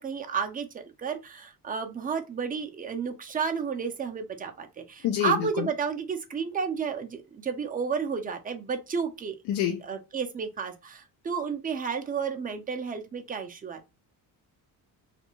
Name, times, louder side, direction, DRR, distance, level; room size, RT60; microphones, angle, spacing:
voice 1, 0.0-9.4 9.8-13.9, right 6 dB, 20° right, 0.4 m, -32 dB
voice 2, 5.0-5.7 9.5-9.8, left 11 dB, 70° left, 0.5 m, -27 dB
2.5 x 2.1 x 2.9 m
cardioid pair, 100°, 43 cm